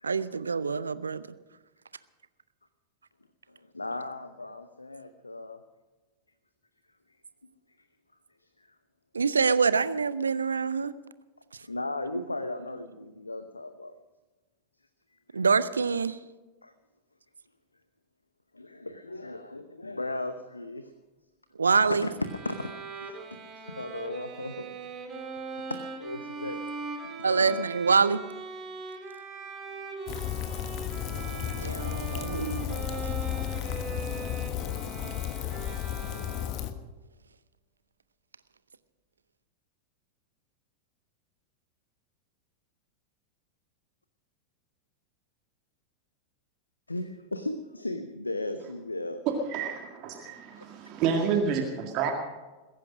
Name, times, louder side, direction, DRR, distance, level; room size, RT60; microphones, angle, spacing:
voice 1, 0.0-1.2 9.1-10.9 15.3-16.2 21.6-22.1 27.2-28.2 31.6-32.6 32.9-33.0, right 5 dB, 75° right, 16 dB, 0.7 m, -25 dB
voice 2, 3.5-5.6 8.4-8.8 11.6-14.0 15.1-15.4 16.6-16.7 18.5-20.9 21.9-22.7 23.0-25.0 25.7-26.9 27.4-27.5 46.9-49.3 50.3-50.4, left 2 dB, 80° left, 11 dB, 0.8 m, -36 dB
Bowed string instrument, 22.2-36.8, right 4 dB, 25° right, 2.7 m, -40 dB
Rain, 30.1-36.7, left 11 dB, 40° left, 1.2 m, -33 dB
voice 3, 49.3-52.1, right 6 dB, 40° right, 3 dB, 2.1 m, -29 dB
21.0 x 10.5 x 6.3 m, 1.2 s
figure-of-eight pair, 90°, 0 cm